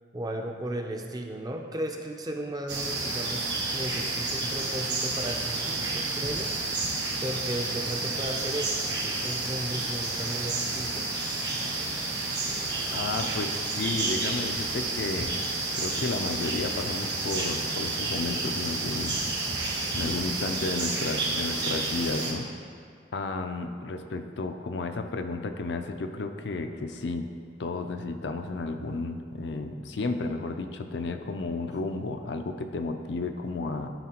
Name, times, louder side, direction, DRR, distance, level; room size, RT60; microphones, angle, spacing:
voice 1, 0.1-7.0 7.2-11.1, right 1 dB, 20° right, 3 dB, 0.5 m, -35 dB
sound 1, 2.7-22.3, right 3 dB, 70° right, 1.4 m, -30 dB
voice 2, 12.9-15.4 15.8-19.2 20.0-22.5 23.1-27.3 27.6-33.9, left 3 dB, 70° left, 6 dB, 0.5 m, -32 dB
12.0 x 4.1 x 2.9 m, 2.4 s
head